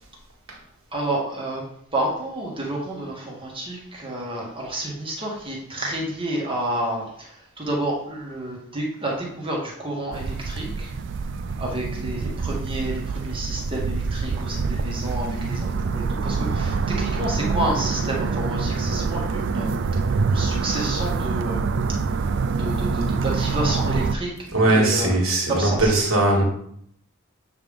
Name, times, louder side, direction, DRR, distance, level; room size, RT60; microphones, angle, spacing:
voice 1, 0.9-1.6 1.9-10.9 11.6-19.7 20.3-21.7 22.6-24.3 24.7-25.1 25.5-25.9, right 1 dB, 25° right, -2 dB, 1.5 m, -29 dB
sound 1, 10.1-24.2, right 4 dB, 60° right, 0.4 m, -25 dB
voice 2, 24.5-26.4, right 2 dB, 75° right, -1 dB, 2.0 m, -19 dB
7.8 x 3.4 x 5.2 m, 0.70 s
head